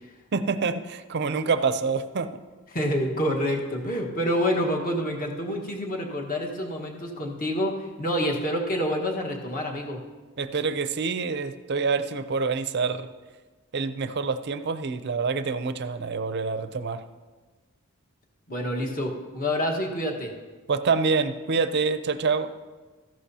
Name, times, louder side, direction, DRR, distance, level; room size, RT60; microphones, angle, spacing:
voice 1, 0.3-2.3 10.4-13.1 13.7-17.0 20.7-22.5, right 4 dB, 50° right, 11 dB, 0.5 m, -26 dB
voice 2, 2.7-10.0 18.5-20.3, equal, 40° left, 1 dB, 1.4 m, -27 dB
14.0 x 11.5 x 2.8 m, 1.3 s
head